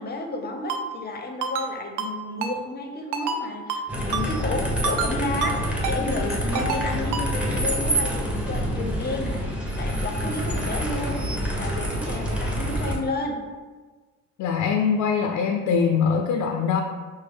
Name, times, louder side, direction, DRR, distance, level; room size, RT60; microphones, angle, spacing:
voice 1, 0.0-9.5 9.8-13.4, left 2 dB, 35° left, 2 dB, 0.7 m, -32 dB
Ringtone, 0.7-0.8 1.4-1.7 2.0-2.1 2.4-2.5 3.1-3.4 3.7-3.8 4.1-4.3 4.8-5.1 5.4-5.5 5.8-6.0 6.5-6.8 7.1-7.3, right 5 dB, 85° right, 0.5 m, -27 dB
sound 1, 3.9-13.0, equal, 5° right, 1.0 m, -27 dB
voice 2, 14.4-16.8, left 6 dB, 80° left, 2 dB, 0.5 m, -22 dB
6.0 x 2.1 x 3.5 m, 1.3 s
cardioid pair, 90°, 30 cm